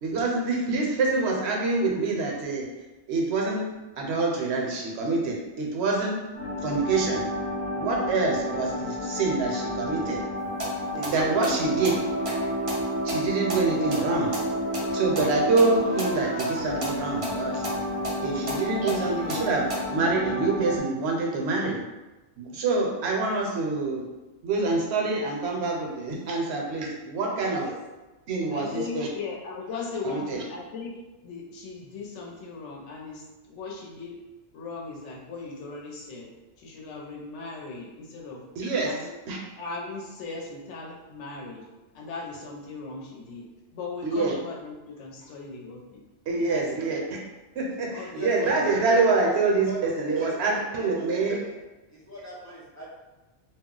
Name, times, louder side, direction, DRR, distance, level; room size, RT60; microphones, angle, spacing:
voice 1, 0.0-2.7 3.1-6.3 6.6-7.3 7.7-10.2 10.9-12.1 13.0-14.4 14.9-17.6 18.2-21.8 22.4-24.1 24.4-27.7 28.3-29.1 30.0-30.4 38.6-39.4 44.0-44.3 46.3-47.0 47.6-51.4, right 3 dB, 70° right, -1 dB, 0.8 m, -26 dB
sound 1, 6.3-20.8, left 1 dB, 40° left, 0.9 m, -31 dB
sound 2, 10.4-19.8, right 1 dB, 35° right, 0.6 m, -37 dB
voice 2, 28.5-34.2 34.5-38.4 38.8-39.1 39.6-41.7 41.9-43.4 43.7-46.0 46.4-46.9 47.9-48.2, left 4 dB, 80° left, -1 dB, 0.9 m, -38 dB
voice 3, 48.1-48.5 49.2-49.3 49.6-50.3 50.6-51.1 51.4-51.6 51.9-52.9, right 1 dB, 25° left, -8 dB, 0.4 m, -40 dB
2.3 x 2.0 x 3.7 m, 1.1 s
omnidirectional pair, 1.2 m